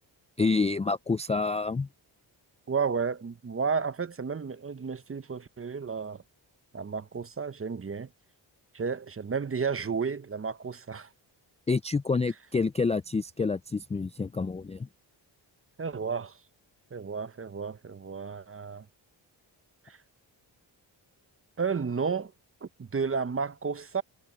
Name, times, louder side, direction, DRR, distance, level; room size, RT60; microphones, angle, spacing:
voice 1, 0.4-1.9 11.7-14.9, left 4 dB, 15° left, 0.4 m, -28 dB
voice 2, 2.7-6.2 6.7-8.1 8.7-11.1 15.8-16.4 16.9-18.8 19.8-20.0 21.6-22.3 22.6-24.0, right 5 dB, 30° right, 0.8 m, -32 dB
cardioid pair, 65°, 46 cm